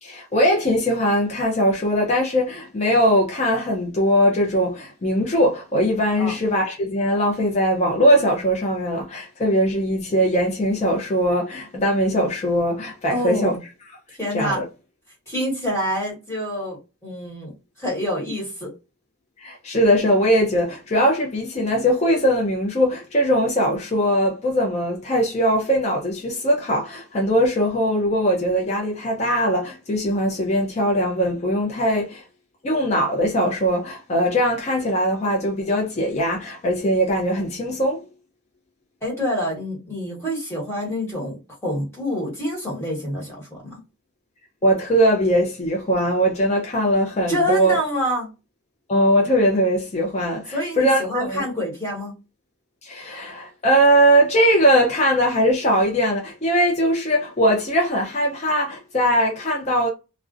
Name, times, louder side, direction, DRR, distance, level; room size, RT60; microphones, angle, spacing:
voice 1, 0.0-13.6 14.3-14.6 19.4-32.2 32.6-38.0 44.6-47.8 48.9-51.5 52.8-59.9, equal, 30° left, 0.4 m, -20 dB
voice 2, 13.1-13.6 14.2-14.6 15.3-18.7 39.0-43.7 47.3-48.3 50.5-52.1, equal, 10° left, 1.2 m, -27 dB
2.4 x 2.1 x 2.4 m
head